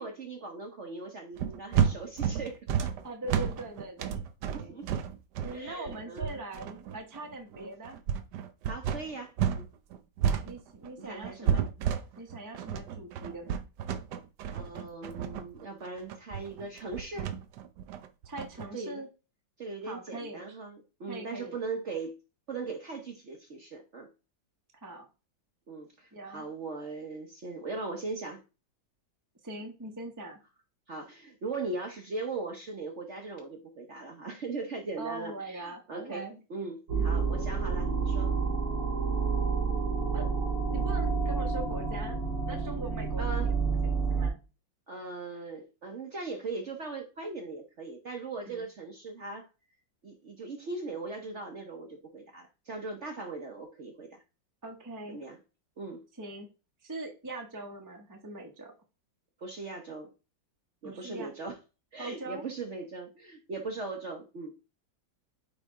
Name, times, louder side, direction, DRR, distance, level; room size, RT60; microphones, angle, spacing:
voice 1, 0.0-2.9 4.5-5.0 5.5-6.4 7.5-7.7 8.6-9.7 11.0-11.6 14.5-17.3 18.7-19.0 19.6-22.1 22.5-24.1 25.7-28.4 30.9-38.3 43.2-43.5 44.9-49.5 50.0-54.2 55.1-55.4 55.8-56.0 59.4-60.1 60.8-61.6 61.9-64.5, right 3 dB, 50° right, 2 dB, 1.0 m, -39 dB
sound 1, 1.4-9.6 9.9-18.7, right 8 dB, 70° right, 1.2 m, -31 dB
voice 2, 3.0-4.2 4.5-4.8 5.4-8.0 10.4-11.6 12.2-13.6 18.2-19.1 19.8-20.4 21.1-21.6 24.7-25.1 26.1-26.5 29.4-30.4 35.0-36.4 37.0-37.2 40.1-40.3 40.7-42.2 42.5-44.4 48.4-48.7 54.6-55.2 56.2-56.5 56.8-58.7 60.8-61.3 62.0-62.4, right 2 dB, 15° right, 2 dB, 0.7 m, -41 dB
sound 2, 36.9-44.3, right 5 dB, 90° right, 3.3 m, -29 dB
9.0 x 3.2 x 3.6 m, 0.31 s
omnidirectional pair, 2.0 m